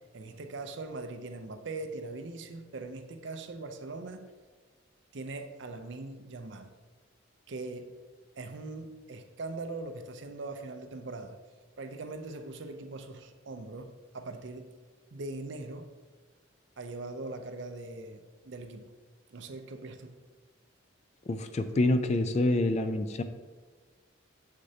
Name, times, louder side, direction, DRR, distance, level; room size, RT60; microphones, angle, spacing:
voice 1, 0.1-4.3 5.1-6.7 7.5-7.9 8.4-11.4 11.8-14.7 15.1-15.9 16.8-18.9 19.3-20.2, right 2 dB, 60° right, 7 dB, 0.5 m, -41 dB
voice 2, 21.3-23.2, left 2 dB, 30° left, 9 dB, 0.3 m, -27 dB
6.7 x 6.3 x 2.8 m, 1.4 s
head